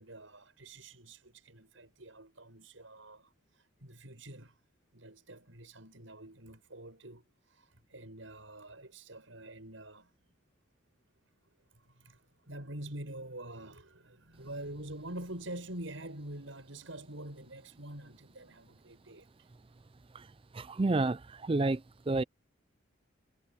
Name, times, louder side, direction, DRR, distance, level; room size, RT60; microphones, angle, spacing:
voice 1, 0.0-4.6 4.9-10.1 11.7-19.5, right 1 dB, 75° right, 7.7 m, -46 dB
voice 2, 20.5-22.2, right 2 dB, 25° right, 0.4 m, -30 dB
head